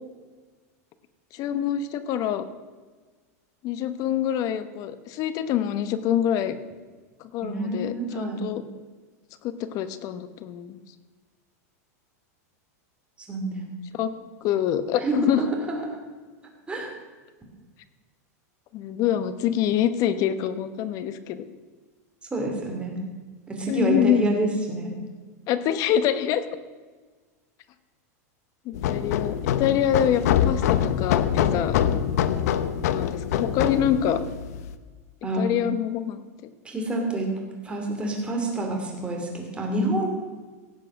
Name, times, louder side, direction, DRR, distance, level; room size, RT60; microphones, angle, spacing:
voice 1, 1.3-2.4 3.6-6.6 7.2-8.6 9.4-10.8 13.9-14.1 14.4-15.4 18.7-21.4 23.7-24.2 25.5-26.4 28.6-31.8 32.8-34.2 35.4-36.2, left 10 dB, 40° left, 12 dB, 1.0 m, -25 dB
voice 2, 7.4-8.4 13.2-13.7 15.0-16.0 16.7-16.9 22.3-23.0 23.5-24.9 35.2-35.6 36.6-37.3 37.6-40.1, right 2 dB, 10° right, 1 dB, 2.8 m, -27 dB
sound 1, 28.7-34.8, left 9 dB, 70° left, 0.8 m, -24 dB
16.5 x 7.5 x 6.4 m, 1.4 s
supercardioid pair, 140°, 9 cm